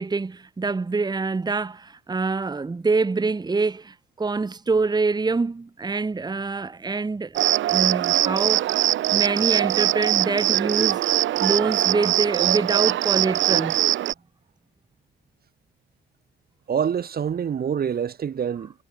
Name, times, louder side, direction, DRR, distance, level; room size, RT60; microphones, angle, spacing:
voice 1, 0.0-7.4 7.6-8.7 9.1-11.0 11.4-13.8, right 4 dB, 20° right, 1.3 m, -25 dB
Cricket, 7.3-14.1, right 13 dB, 75° right, 1.0 m, -22 dB
voice 2, 16.7-18.7, right 8 dB, 50° right, 2.1 m, -26 dB
cardioid pair, 90°, 20 cm